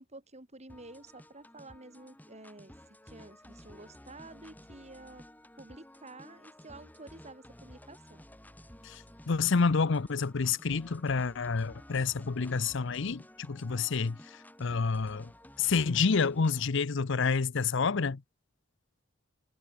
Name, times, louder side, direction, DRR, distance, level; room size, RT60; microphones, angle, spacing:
voice 1, 0.0-2.7 3.0-5.2 5.6-8.2, right 2 dB, 35° right, 4.9 m, -50 dB
sound 1, 0.7-16.7, left 1 dB, 10° left, 3.4 m, -54 dB
voice 2, 8.8-15.3 15.6-18.2, left 5 dB, 65° left, 0.7 m, -29 dB
head